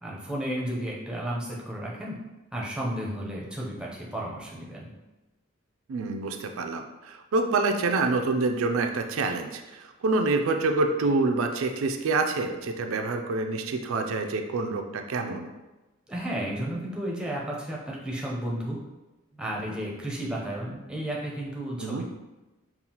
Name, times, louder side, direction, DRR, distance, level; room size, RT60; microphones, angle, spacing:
voice 1, 0.0-2.2 2.5-4.9 16.1-18.8 19.3-22.0, right 1 dB, 5° right, -4 dB, 0.5 m, -33 dB
voice 2, 5.9-15.5 21.8-22.0, right 3 dB, 85° right, 5 dB, 0.4 m, -27 dB
5.3 x 2.4 x 2.9 m, 1.1 s
head